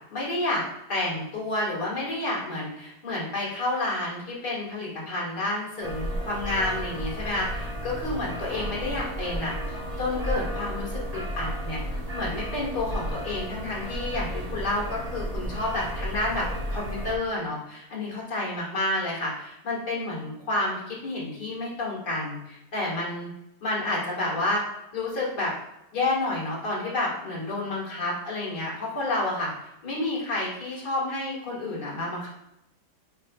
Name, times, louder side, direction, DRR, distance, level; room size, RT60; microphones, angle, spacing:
voice 1, 0.1-0.6 0.9-23.3 23.6-24.6 24.9-25.5 25.9-32.3, left 2 dB, 70° left, -5 dB, 2.4 m, -30 dB
sound 1, 5.8-17.2, equal, 30° right, 0.8 m, -33 dB
8.5 x 4.8 x 2.4 m, 0.84 s
omnidirectional pair, 1.8 m